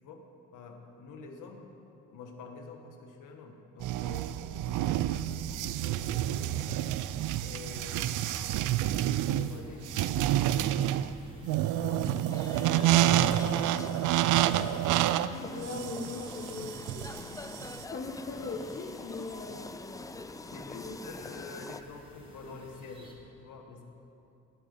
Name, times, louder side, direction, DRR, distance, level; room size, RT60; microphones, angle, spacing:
voice 1, 0.5-1.7 2.1-6.8 7.4-8.2 8.5-10.7 11.8-12.5 12.8-14.3 17.2-17.5 20.1-23.8, left 4 dB, 85° left, 3 dB, 1.7 m, -47 dB
sound 1, 3.8-17.8, right 12 dB, 85° right, 0.5 m, -28 dB
sound 2, 5.9-23.1, right 1 dB, 15° right, 2.6 m, -54 dB
sound 3, 12.3-21.8, left 3 dB, 10° left, 0.4 m, -44 dB
voice 2, 15.2-17.3 17.9-19.7 20.7-21.0, left 3 dB, 40° left, 0 dB, 1.4 m, -39 dB
16.5 x 9.1 x 5.6 m, 2.7 s
cardioid pair, 90°, 30 cm